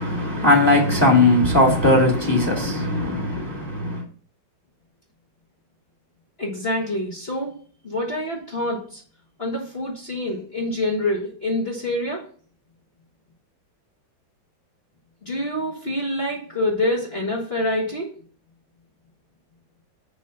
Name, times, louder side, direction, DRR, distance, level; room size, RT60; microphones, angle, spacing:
voice 1, 0.0-4.0, left 2 dB, 10° left, 1.8 m, -18 dB
voice 2, 6.4-7.6 7.8-9.0 9.4-12.2 15.2-18.1, left 1 dB, 30° left, 1.8 m, -26 dB
7.0 x 5.3 x 6.7 m
omnidirectional pair, 2.1 m